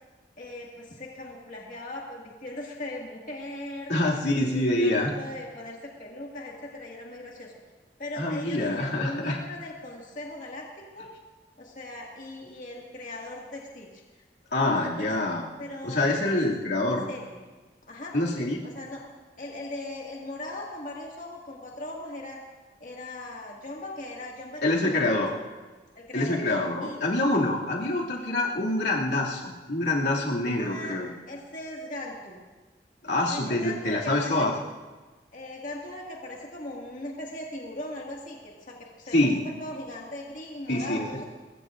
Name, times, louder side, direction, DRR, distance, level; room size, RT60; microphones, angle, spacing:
voice 1, 0.4-3.9 4.3-7.5 8.0-10.7 10.9-11.1 11.6-14.0 14.6-15.2 15.6-16.4 16.8-17.4 17.9-18.1 18.7-19.0 19.4-22.4 22.8-25.3 26.0-26.4 26.8-27.0 27.9-28.3 30.6-32.5 33.3-34.5 35.3-41.2, left 1 dB, 45° left, -2 dB, 2.1 m, -39 dB
voice 2, 3.9-5.1 8.2-9.4 14.5-15.5 15.8-17.0 18.1-18.6 24.6-25.3 26.1-31.1 33.0-34.5 39.1-39.4 40.7-41.1, left 2 dB, 80° left, -4 dB, 2.6 m, -26 dB
24.0 x 21.0 x 2.6 m, 1.3 s
head